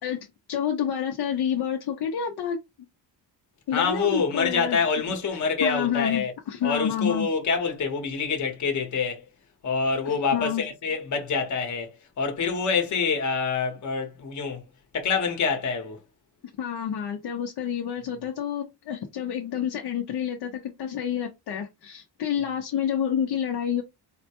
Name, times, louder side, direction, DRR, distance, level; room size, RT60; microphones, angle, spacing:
voice 1, 0.0-2.6 3.7-4.8 5.6-7.3 10.0-10.6 16.6-23.8, left 8 dB, 65° left, 0.7 m, -29 dB
voice 2, 3.7-6.3 6.6-9.2 9.6-14.6 14.9-16.0, left 5 dB, 45° left, 1.1 m, -26 dB
4.2 x 2.2 x 2.8 m
cardioid pair, 165°, 41 cm